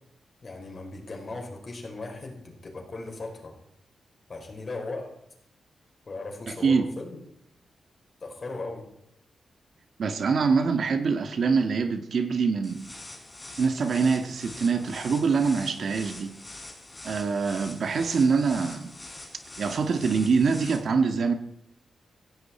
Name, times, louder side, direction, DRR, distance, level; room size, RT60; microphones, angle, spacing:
voice 1, 0.4-3.5 4.3-5.2 6.1-7.2 8.2-8.9, left 2 dB, 40° left, 5.1 m, -37 dB
voice 2, 6.5-6.9 10.0-12.9 13.6-16.4 17.0-18.9 19.6-21.3, right 5 dB, 60° right, 1.7 m, -24 dB
sound 1, 12.6-20.8, left 2 dB, 20° left, 3.9 m, -44 dB
18.0 x 16.0 x 4.5 m
wide cardioid pair, 110°, 0 cm